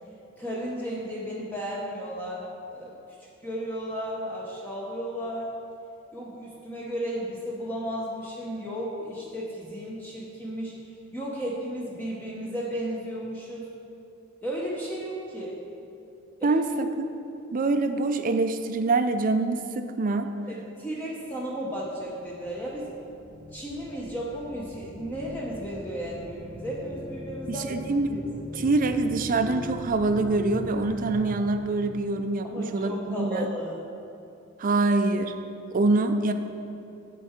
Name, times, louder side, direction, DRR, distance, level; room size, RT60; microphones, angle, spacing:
voice 1, 0.4-3.0 3.4-5.5 6.1-10.7 11.1-13.7 14.4-15.6 16.4-16.6 20.5-22.9 23.5-28.2 32.4-33.8, equal, 10° left, -5 dB, 0.7 m, -34 dB
voice 2, 16.4-16.9 17.5-20.3 27.7-28.3 28.5-33.5 34.6-35.3 35.7-36.3, right 3 dB, 40° right, 8 dB, 0.4 m, -25 dB
sound 1, 22.0-31.3, equal, 25° left, 1.8 m, -40 dB
10.5 x 4.7 x 4.3 m, 2.8 s
head